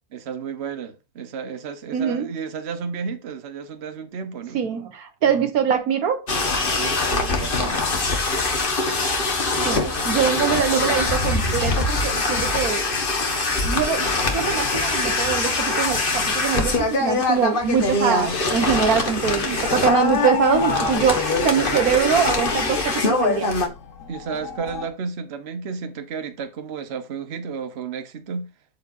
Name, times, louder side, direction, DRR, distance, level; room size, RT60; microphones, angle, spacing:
voice 1, 0.1-4.6 6.8-7.9 9.5-10.9 19.2-19.7 24.1-28.5, right 6 dB, 50° right, 1.2 m, -33 dB
voice 2, 1.9-2.3 4.5-6.3 9.6-13.0 13.6-23.5, right 7 dB, 80° right, 1.5 m, -23 dB
sound 1, 6.3-23.7, left 3 dB, 40° left, 1.5 m, -23 dB
sound 2, 19.5-24.9, left 7 dB, 65° left, 1.3 m, -33 dB
12.0 x 4.8 x 2.6 m
omnidirectional pair, 1.5 m